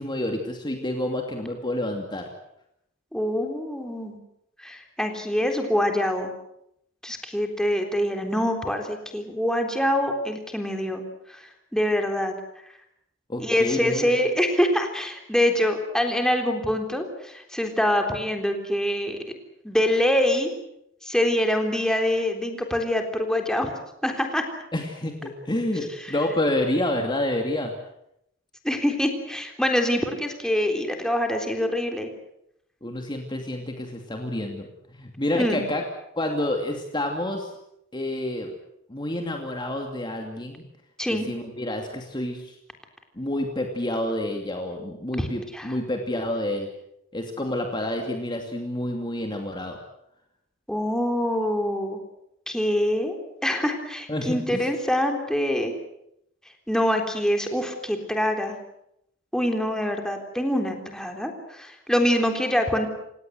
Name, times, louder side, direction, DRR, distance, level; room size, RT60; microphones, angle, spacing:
voice 1, 0.0-2.3 13.3-14.1 24.7-27.7 32.8-35.8 36.2-37.5 37.9-38.5 38.9-40.7 41.1-42.5 43.2-46.7 47.1-49.8 54.1-54.7, left 1 dB, 25° left, 3 dB, 2.6 m, -28 dB
voice 2, 3.1-4.2 4.6-6.3 7.0-11.0 11.3-12.3 13.4-19.2 19.6-20.5 21.0-23.7 24.0-24.5 26.1-26.2 28.6-32.1 35.3-35.6 41.0-41.3 45.2-45.3 45.5-45.8 50.7-52.0 52.5-55.7 56.7-58.6 59.3-62.9, left 1 dB, 5° left, 4 dB, 3.7 m, -25 dB
29.0 x 18.0 x 8.0 m, 0.78 s
head